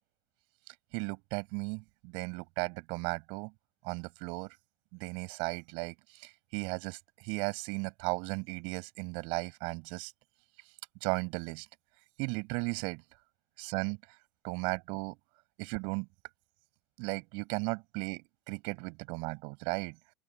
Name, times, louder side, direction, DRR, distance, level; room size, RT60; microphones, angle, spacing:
voice 1, 0.9-3.5 3.8-4.5 4.9-10.1 11.0-11.7 12.2-13.0 13.6-14.0 14.4-15.2 15.6-16.1 17.0-20.0, right 34 dB, 55° right, 7.4 m, -36 dB
open air
figure-of-eight pair, 80°, 11 cm